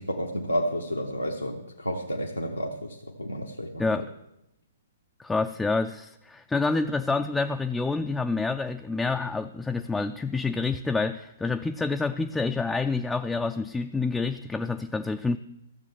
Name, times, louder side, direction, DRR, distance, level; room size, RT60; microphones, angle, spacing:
voice 1, 0.0-4.0, equal, 90° left, 0 dB, 1.0 m, -31 dB
voice 2, 3.8-4.1 5.2-15.4, left 3 dB, 5° left, 7 dB, 0.3 m, -28 dB
13.5 x 7.0 x 6.3 m, 0.85 s
figure-of-eight pair, 115°, 0 cm